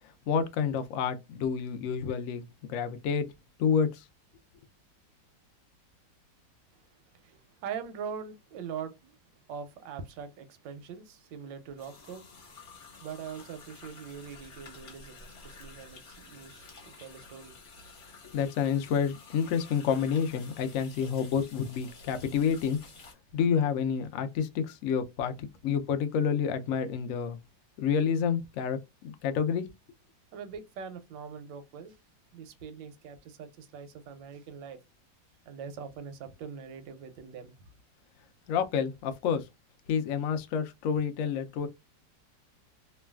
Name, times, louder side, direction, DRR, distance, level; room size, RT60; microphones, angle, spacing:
voice 1, 0.3-3.3 3.6-4.0 18.3-22.8 23.3-27.4 27.8-29.7 38.5-39.5 39.9-41.7, left 7 dB, 85° left, 0.7 m, -29 dB
voice 2, 7.2-9.1 9.5-12.2 13.0-17.9 30.3-32.0 32.3-34.8 35.5-37.7, right 7 dB, 90° right, 1.3 m, -42 dB
sound 1, 11.8-23.1, left 4 dB, 50° left, 1.1 m, -51 dB
3.1 x 2.2 x 2.2 m
omnidirectional pair, 2.0 m